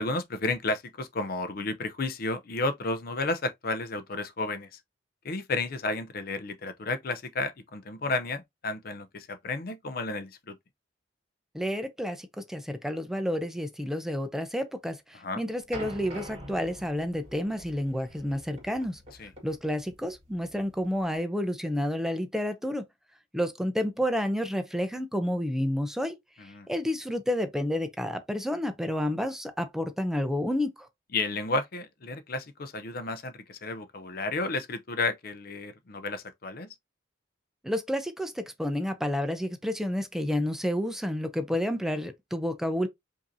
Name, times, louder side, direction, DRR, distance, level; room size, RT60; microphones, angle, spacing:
voice 1, 0.0-4.8 5.2-10.6 15.1-15.4 19.2-19.3 26.4-26.7 31.1-36.7, left 3 dB, 55° left, 0.6 m, -32 dB
voice 2, 11.5-19.0 19.4-22.8 23.3-26.2 26.7-30.9 37.6-42.9, left 1 dB, ahead, 0.5 m, -30 dB
sound 1, 15.7-21.1, right 1 dB, 35° right, 1.8 m, -45 dB
5.0 x 2.7 x 2.6 m
head